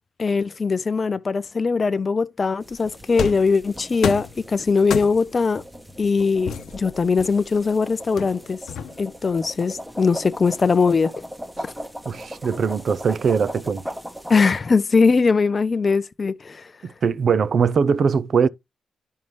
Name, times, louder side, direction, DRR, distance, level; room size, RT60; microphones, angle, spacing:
voice 1, 0.2-5.6 6.0-8.6 9.0-11.2 11.6-11.7 14.3-16.7, left 4 dB, 40° left, 0.5 m, -21 dB
sound 1, 2.6-14.6, equal, 5° right, 1.0 m, -38 dB
sound 2, 3.2-3.5 4.0-4.4 4.9-5.4 6.5-7.6 8.2-9.2, left 7 dB, 80° left, 0.7 m, -29 dB
voice 2, 12.1-13.8 16.8-18.5, right 6 dB, 60° right, 0.5 m, -21 dB
11.0 x 5.4 x 3.1 m
cardioid pair, 95°, 0 cm